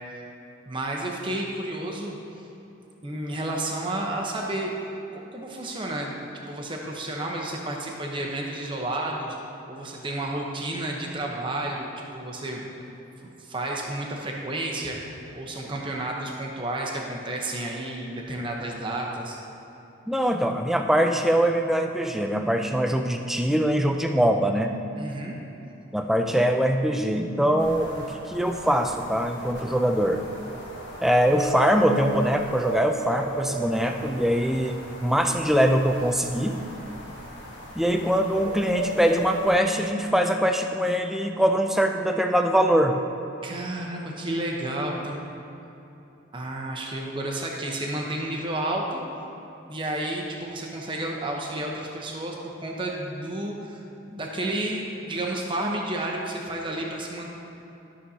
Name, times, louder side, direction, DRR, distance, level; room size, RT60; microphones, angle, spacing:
voice 1, 0.7-2.2 3.0-4.7 5.3-9.4 9.7-12.7 13.2-15.0 15.3-19.4 25.0-25.4 43.4-45.2 46.3-49.0 49.7-57.4, right 1 dB, 25° right, -1 dB, 0.8 m, -31 dB
voice 2, 20.1-24.7 25.9-30.2 31.0-36.6 37.8-43.0, equal, ahead, 4 dB, 0.3 m, -23 dB
sound 1, 27.6-39.6, right 1 dB, 60° left, 1.8 m, -36 dB
13.0 x 6.3 x 2.8 m, 3.0 s
head